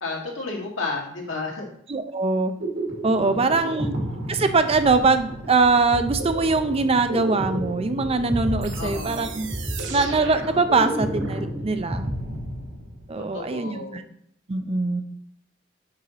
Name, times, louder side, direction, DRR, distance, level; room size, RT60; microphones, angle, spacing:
voice 1, 0.0-1.7 3.2-3.9 8.7-9.3 13.2-14.0, left 3 dB, 80° left, 0 dB, 1.7 m, -32 dB
voice 2, 1.9-2.5 3.0-3.9 4.3-9.5 9.9-12.1 13.1-14.0 14.5-15.0, right 3 dB, 30° right, 9 dB, 0.5 m, -22 dB
sound 1, 2.6-13.1, right 1 dB, 90° right, 2.4 m, -31 dB
sound 2, 8.6-11.5, right 6 dB, 70° right, 0.9 m, -39 dB
5.7 x 5.4 x 4.0 m, 0.70 s
head